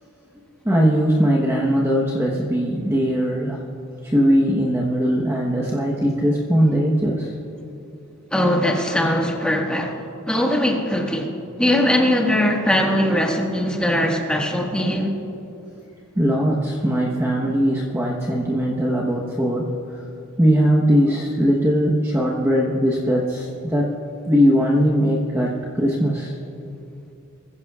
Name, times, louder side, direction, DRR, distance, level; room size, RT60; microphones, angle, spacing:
voice 1, 0.6-3.6 4.0-7.3 16.1-19.7 20.4-23.9 24.3-26.3, equal, 10° right, -3 dB, 1.1 m, -20 dB
voice 2, 8.3-10.0 10.3-11.3 11.6-15.1, left 1 dB, 5° left, 0 dB, 1.6 m, -20 dB
24.5 x 15.5 x 2.4 m, 2.8 s
head